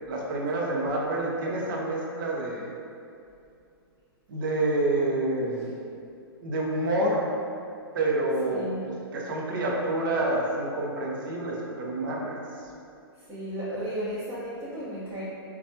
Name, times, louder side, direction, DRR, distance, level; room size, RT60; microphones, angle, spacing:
voice 1, 0.1-2.7 4.3-5.7 6.4-7.3 7.9-12.4, right 2 dB, 55° right, -3 dB, 0.7 m, -28 dB
voice 2, 8.5-8.9 13.3-15.2, equal, 20° right, -12 dB, 0.8 m, -34 dB
4.0 x 2.3 x 2.8 m, 2.5 s
figure-of-eight pair, 120°, 13 cm